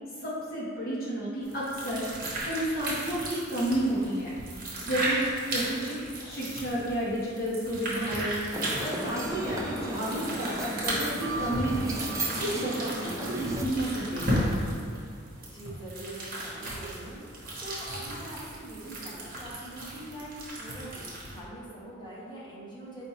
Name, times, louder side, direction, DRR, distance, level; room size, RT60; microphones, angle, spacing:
voice 1, 0.2-2.1 2.4-4.3 4.8-8.4 8.8-12.0 12.3-14.5, right 1 dB, 45° left, -8 dB, 1.3 m, -31 dB
sound 1, 1.4-21.4, right 1 dB, 40° right, 0.9 m, -35 dB
sound 2, 8.5-13.7, right 2 dB, 15° right, 0.3 m, -34 dB
voice 2, 10.1-10.6 15.4-23.1, right 1 dB, 20° left, -7 dB, 1.0 m, -43 dB
4.8 x 2.5 x 4.3 m, 2.3 s
head